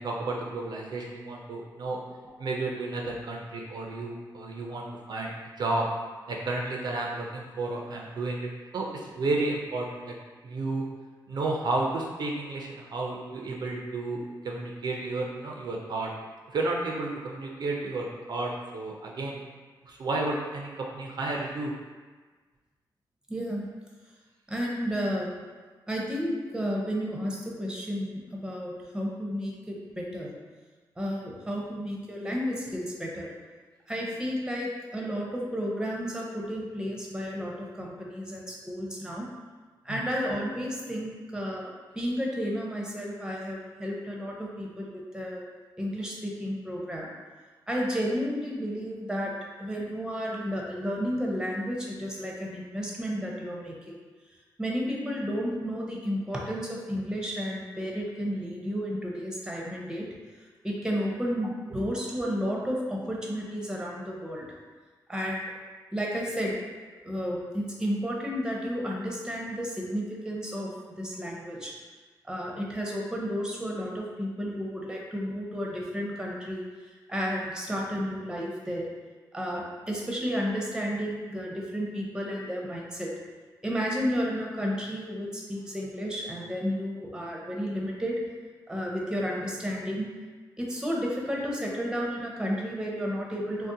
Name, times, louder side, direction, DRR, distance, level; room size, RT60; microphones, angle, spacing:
voice 1, 0.0-2.0 2.4-5.3 5.6-5.9 6.3-10.2 10.4-10.8 11.3-14.2 14.4-16.1 16.5-19.4 19.8-21.7 39.9-40.0 61.7-61.8, right 2 dB, 60° right, -1 dB, 0.4 m, -32 dB
voice 2, 23.3-23.7 24.5-25.3 25.9-30.3 31.0-33.3 33.9-39.3 39.8-41.7 41.9-45.4 45.8-47.1 47.7-54.0 54.6-60.1 60.6-64.5 65.1-65.4 65.9-66.5 67.0-71.7 72.2-78.9 79.3-83.1 83.6-88.2 88.7-90.1 90.6-93.7, equal, 10° right, -2 dB, 0.6 m, -32 dB
2.6 x 2.0 x 3.7 m, 1.4 s
cardioid pair, 80°, 8 cm